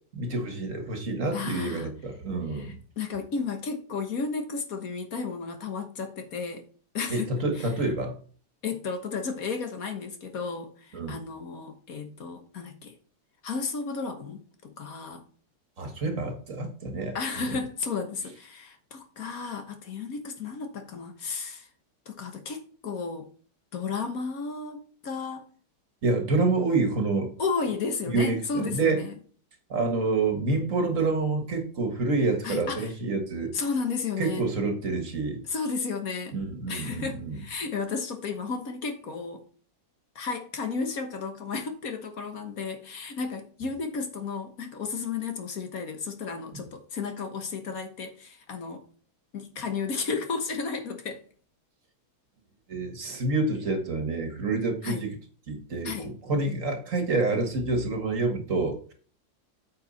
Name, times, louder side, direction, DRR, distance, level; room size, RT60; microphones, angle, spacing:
voice 1, 0.1-2.8 7.1-8.2 10.9-11.2 15.8-17.6 26.0-27.3 28.1-29.0 29.7-33.5 34.2-35.4 36.3-37.4 52.7-55.1 55.5-58.9, right 3 dB, 50° right, 1.8 m, -28 dB
voice 2, 1.3-1.9 2.5-6.7 6.9-7.3 7.5-7.7 8.6-12.9 13.4-15.2 17.1-21.7 22.1-23.3 23.7-25.5 27.4-29.1 32.4-32.9 33.5-34.5 35.4-36.4 36.7-39.4 40.1-48.8 49.3-51.2 54.8-55.0 55.8-56.1, left 5 dB, 60° left, 1.6 m, -33 dB
8.7 x 5.6 x 4.1 m
omnidirectional pair, 1.8 m